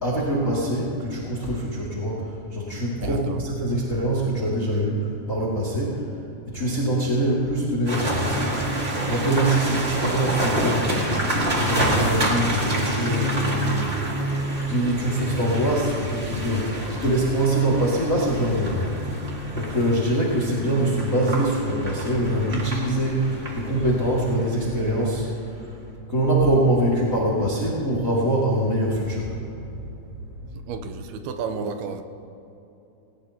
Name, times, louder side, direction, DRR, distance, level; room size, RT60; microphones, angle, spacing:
voice 1, 0.0-6.1 6.5-8.6 9.1-14.1 14.7-19.0 19.5-25.7 26.1-29.5, right 1 dB, 25° left, -4 dB, 2.2 m, -24 dB
voice 2, 3.0-3.4 30.7-32.0, right 5 dB, 85° right, 7 dB, 2.8 m, -32 dB
sound 1, 7.8-25.0, right 1 dB, 30° right, 1.3 m, -28 dB
19.0 x 18.0 x 3.0 m, 2.9 s
omnidirectional pair, 4.5 m